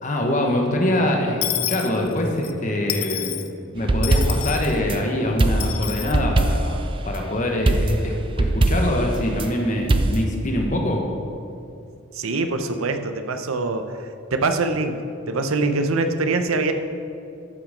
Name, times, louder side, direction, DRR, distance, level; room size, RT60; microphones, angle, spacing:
voice 1, 0.0-3.4 3.7-11.0, left 1 dB, 35° left, 1 dB, 1.3 m, -24 dB
Dishes pots and pans / Coin (dropping), 1.4-2.5 2.9-3.5 4.0-4.8 5.6-6.1, left 13 dB, 90° left, 0.6 m, -29 dB
sound 1, 3.8-5.0 5.4-6.9 7.7-9.5 9.9-10.2, right 2 dB, 25° right, 0.4 m, -21 dB
voice 2, 12.1-16.7, right 3 dB, 85° right, 7 dB, 0.7 m, -24 dB
13.5 x 5.9 x 5.1 m, 2.6 s
head